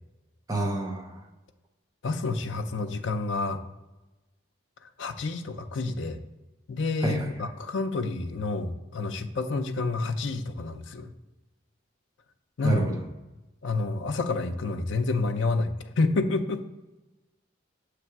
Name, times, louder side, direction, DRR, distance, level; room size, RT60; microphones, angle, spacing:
voice 1, 0.5-1.2 7.0-7.3 12.6-13.0, right 2 dB, 20° right, 0 dB, 0.8 m, -28 dB
voice 2, 2.0-3.6 5.0-6.2 6.7-11.1 12.6-12.8 13.6-16.6, left 3 dB, 80° left, 8 dB, 0.5 m, -29 dB
7.0 x 3.3 x 4.6 m, 1.1 s
head